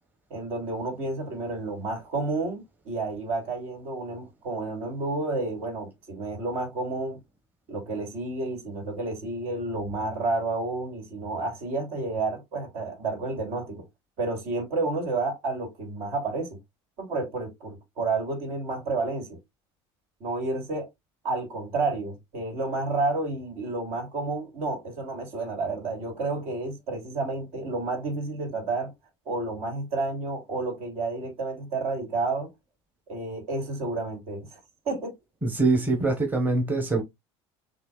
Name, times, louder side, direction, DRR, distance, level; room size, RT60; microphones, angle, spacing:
voice 1, 0.3-7.2 7.7-13.8 14.2-16.6 17.0-19.4 20.2-20.9 21.2-28.9 29.3-32.5 33.1-34.6 34.8-35.1, right 3 dB, 60° right, 2.9 m, -30 dB
voice 2, 35.4-37.0, right 2 dB, 15° right, 1.3 m, -24 dB
6.7 x 3.0 x 2.4 m
supercardioid pair, 115°, 14 cm